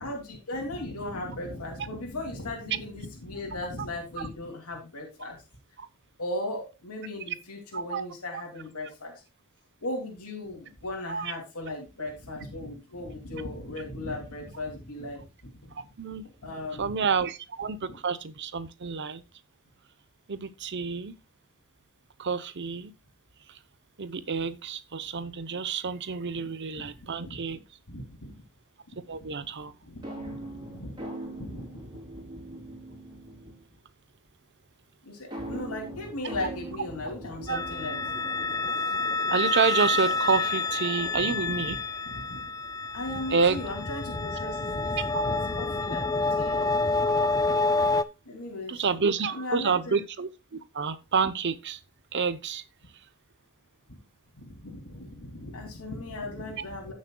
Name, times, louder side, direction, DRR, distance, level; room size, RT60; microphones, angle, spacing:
voice 1, 0.0-5.4 6.2-9.1 9.8-15.8 16.4-16.9 17.9-18.0 26.8-27.4 27.9-28.3 28.9-29.3 29.8-31.1 31.4-31.9 35.0-38.0 41.1-41.8 42.1-42.4 42.9-46.9 48.2-49.0 49.3-50.0 54.4-56.9, left 1 dB, 85° left, 2.7 m, -37 dB
voice 2, 7.7-8.0 11.1-11.3 16.0-16.2 16.8-19.2 20.3-21.1 22.2-22.9 24.0-27.6 29.1-29.7 37.5-37.6 39.3-41.8 43.3-43.6 45.1-45.2 47.2-47.3 48.7-51.8 52.1-52.6, right 5 dB, 55° right, 0.8 m, -28 dB
sound 1, 30.0-33.8 35.3-38.9, right 1 dB, 20° right, 3.7 m, -41 dB
sound 2, 37.5-48.0, left 3 dB, 15° left, 0.4 m, -28 dB
15.5 x 6.4 x 2.3 m
head